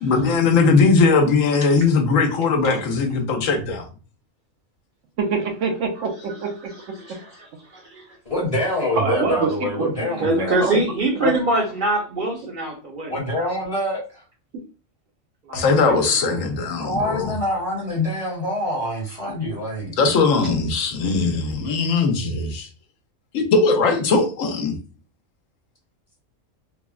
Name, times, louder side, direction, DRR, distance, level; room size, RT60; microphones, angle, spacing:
voice 1, 0.0-3.9 15.5-17.3 20.0-22.7 23.3-24.8, left 4 dB, 80° left, 1.0 m, -19 dB
voice 2, 5.2-6.5 7.1-7.2 9.0-10.8 11.2-11.3, right 4 dB, 75° right, 1.0 m, -25 dB
voice 3, 6.6-7.5 7.7-8.0 10.2-13.1 15.5-15.9 16.2-16.4, right 1 dB, 50° right, 0.7 m, -24 dB
voice 4, 8.3-10.6 13.1-14.2 16.8-19.9, left 1 dB, 35° left, 0.7 m, -25 dB
3.4 x 2.0 x 2.3 m
omnidirectional pair, 1.3 m